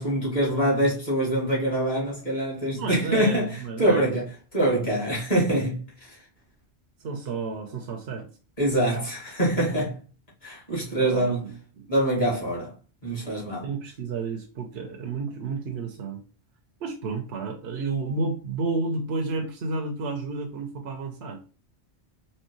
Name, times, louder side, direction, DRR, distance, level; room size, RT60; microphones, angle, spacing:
voice 1, 0.0-6.2 8.6-10.0 10.4-11.5 11.9-12.7 13.0-13.7, right 1 dB, 40° left, 2.3 m, -25 dB
voice 2, 2.7-4.1 7.0-8.3 11.1-11.5 11.7-11.9 13.6-16.2 16.8-21.4, right 3 dB, 75° right, 0.9 m, -31 dB
4.3 x 2.9 x 3.0 m
omnidirectional pair, 1.1 m